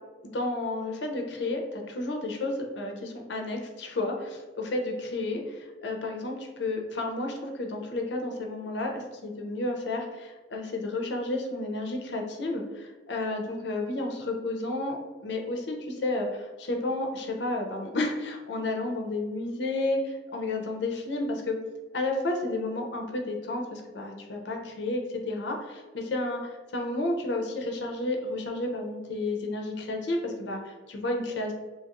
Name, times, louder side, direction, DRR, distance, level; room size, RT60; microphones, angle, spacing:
voice 1, 0.3-15.0 15.2-21.6 21.9-31.5, left 2 dB, 70° left, 2 dB, 0.5 m, -31 dB
2.9 x 2.8 x 2.4 m, 1.3 s
head